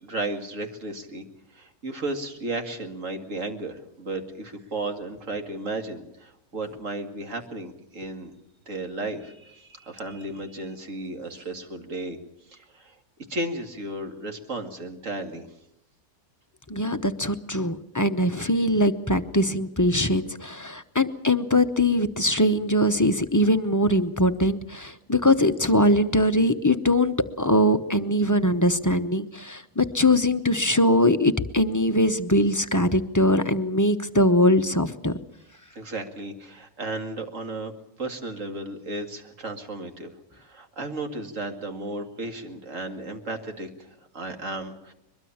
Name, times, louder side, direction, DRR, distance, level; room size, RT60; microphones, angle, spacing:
voice 1, 0.0-1.2 1.5-8.3 8.7-12.2 12.5-13.0 13.3-15.5 35.8-44.9, right 2 dB, 55° right, 5 dB, 2.5 m, -34 dB
voice 2, 16.7-35.1, left 1 dB, 20° left, 8 dB, 0.6 m, -22 dB
22.5 x 22.5 x 7.2 m, 0.79 s
omnidirectional pair, 1.6 m